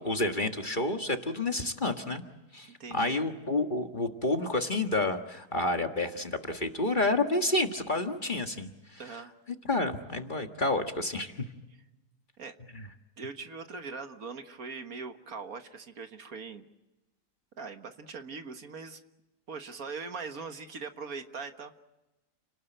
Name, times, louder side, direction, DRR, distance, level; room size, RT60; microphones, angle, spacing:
voice 1, 0.0-2.2 2.5-9.0 9.7-11.3 12.7-12.9, left 2 dB, 30° left, 5 dB, 1.6 m, -29 dB
voice 2, 2.7-3.2 9.0-9.3 12.4-12.6 13.2-16.7 17.6-19.0 19.5-21.8, right 4 dB, 65° right, 7 dB, 1.9 m, -41 dB
30.0 x 19.0 x 9.1 m, 1.0 s
omnidirectional pair, 1.7 m